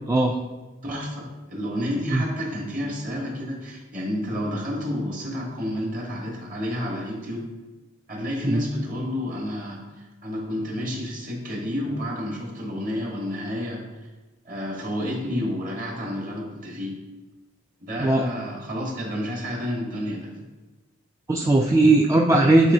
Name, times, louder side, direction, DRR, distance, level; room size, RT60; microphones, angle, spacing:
voice 1, 0.8-7.5 8.1-13.8 14.4-17.0 17.8-20.4, equal, 40° right, -1 dB, 1.4 m, -30 dB
voice 2, 21.3-22.7, right 2 dB, 15° right, 0 dB, 0.3 m, -18 dB
9.0 x 4.2 x 2.7 m, 1.1 s
head